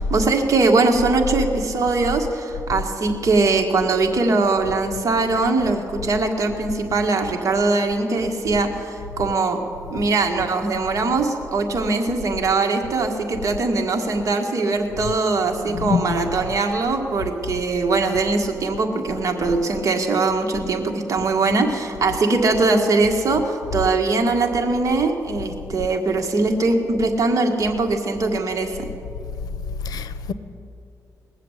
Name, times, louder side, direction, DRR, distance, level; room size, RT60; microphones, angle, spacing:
voice 1, 0.0-9.6 9.9-28.9, right 3 dB, 55° right, 1.8 m, -21 dB
voice 2, 15.7-16.2 29.9-30.3, left 5 dB, 80° left, 0.7 m, -25 dB
20.5 x 7.5 x 8.2 m
cardioid pair, 90°, 6 cm